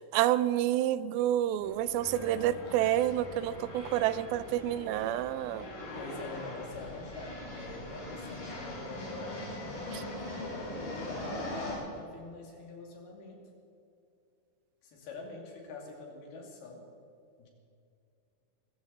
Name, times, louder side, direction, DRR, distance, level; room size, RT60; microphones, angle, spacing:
voice 1, 0.1-5.7 9.9-10.0, right 12 dB, 85° right, 15 dB, 2.4 m, -29 dB
sound 1, 1.6-11.7, left 1 dB, 65° left, 6.2 m, -41 dB
voice 2, 5.9-9.7 10.2-13.4 14.8-16.8 17.4-17.5, left 3 dB, 85° left, 0 dB, 4.4 m, -45 dB
23.5 x 14.5 x 4.1 m, 2.5 s
omnidirectional pair, 4.3 m